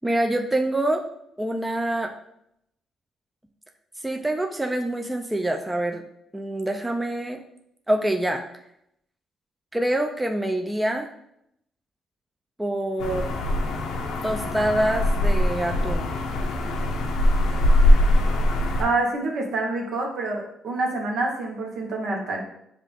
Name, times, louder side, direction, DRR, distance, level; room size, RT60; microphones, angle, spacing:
voice 1, 0.0-1.0 1.4-2.1 4.0-6.0 6.3-7.4 7.9-8.4 9.7-11.1 12.6-13.3 14.2-16.1, right 1 dB, 10° right, 3 dB, 0.4 m, -25 dB
sound 1, 13.0-18.8, left 1 dB, 90° left, 0.6 m, -21 dB
voice 2, 18.8-22.4, right 2 dB, 70° right, 1 dB, 1.0 m, -27 dB
5.5 x 2.5 x 3.4 m, 0.76 s
cardioid pair, 90°, 0 cm